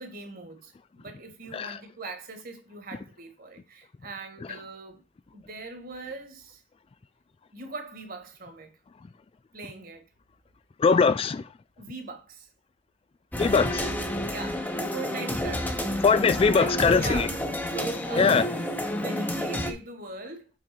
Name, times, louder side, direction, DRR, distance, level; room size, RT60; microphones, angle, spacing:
voice 1, 0.0-5.0 5.3-6.6 7.5-8.7 9.5-10.0 11.8-12.5 14.3-15.9 16.5-18.5 18.9-20.5, right 3 dB, 50° right, 1.9 m, -41 dB
voice 2, 10.8-11.4 13.4-13.9 16.0-17.3 18.2-18.5, left 5 dB, 30° left, 0.3 m, -21 dB
sound 1, 13.3-19.7, equal, 10° left, 1.0 m, -30 dB
7.5 x 4.0 x 4.4 m
head